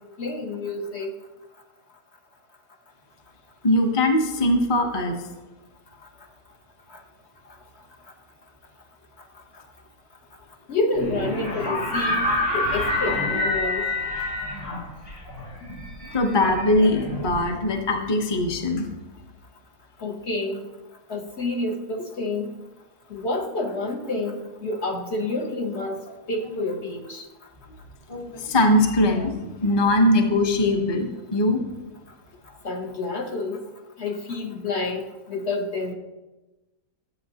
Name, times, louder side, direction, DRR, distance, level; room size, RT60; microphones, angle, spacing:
voice 1, 0.2-1.1 6.9-7.0 10.7-13.8 20.0-20.7 21.1-22.5 23.1-26.0 26.3-27.2 32.6-33.6 34.0-35.9, left 2 dB, 55° left, 2 dB, 1.0 m, -28 dB
voice 2, 3.6-5.2 16.1-18.9 28.1-29.3 29.6-31.6, left 1 dB, 25° left, 4 dB, 0.7 m, -21 dB
sound 1, 10.9-17.8, left 2 dB, 80° left, 4.2 m, -27 dB
12.5 x 7.9 x 2.8 m, 1.1 s
omnidirectional pair, 1.5 m